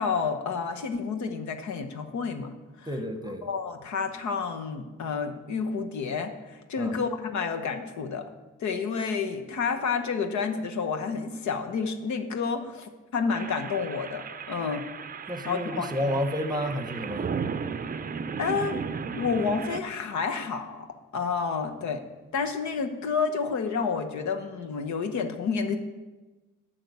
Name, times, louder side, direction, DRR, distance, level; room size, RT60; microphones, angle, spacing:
voice 1, 0.0-2.9 3.4-8.3 8.6-14.8 15.5-15.9 18.4-20.9 21.1-22.0 22.3-25.8, left 5 dB, 70° left, 6 dB, 1.1 m, -30 dB
voice 2, 2.9-3.5 6.8-7.0 15.3-17.3, equal, 15° right, 7 dB, 1.0 m, -30 dB
sound 1, 13.3-19.8, right 6 dB, 30° right, 0.5 m, -35 dB
9.0 x 5.9 x 8.1 m, 1.2 s
cardioid pair, 90°, 30 cm